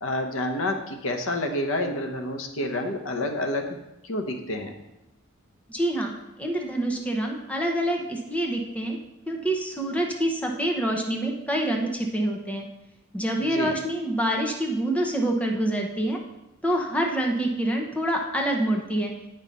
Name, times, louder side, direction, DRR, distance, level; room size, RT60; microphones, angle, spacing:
voice 1, 0.0-3.6 4.0-4.7 13.4-13.7, left 1 dB, 70° left, 5 dB, 0.8 m, -28 dB
voice 2, 5.7-6.1 6.4-9.0 9.3-12.7 13.1-16.2 16.6-19.1, right 1 dB, 5° left, 1 dB, 0.8 m, -26 dB
8.8 x 5.5 x 4.1 m, 0.94 s
head